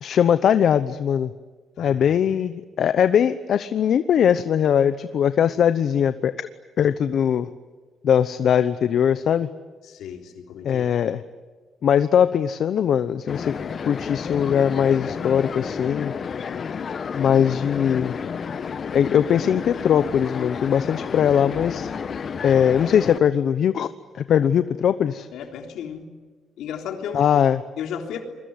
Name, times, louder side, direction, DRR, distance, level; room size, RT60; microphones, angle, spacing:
voice 1, 0.0-1.3 1.8-6.5 6.8-7.5 8.0-9.5 10.6-11.2 11.8-13.6 13.9-16.1 17.1-18.2 18.9-21.9 22.4-23.9 24.1-25.3 27.1-27.6, left 8 dB, 65° left, 12 dB, 0.9 m, -20 dB
voice 2, 9.8-10.9 25.3-26.1 26.6-27.2 27.8-28.2, left 8 dB, 80° left, 4 dB, 3.5 m, -34 dB
sound 1, 13.3-23.2, left 6 dB, 50° left, 1.1 m, -31 dB
28.0 x 22.5 x 9.6 m, 1.4 s
cardioid pair, 90°, 0 cm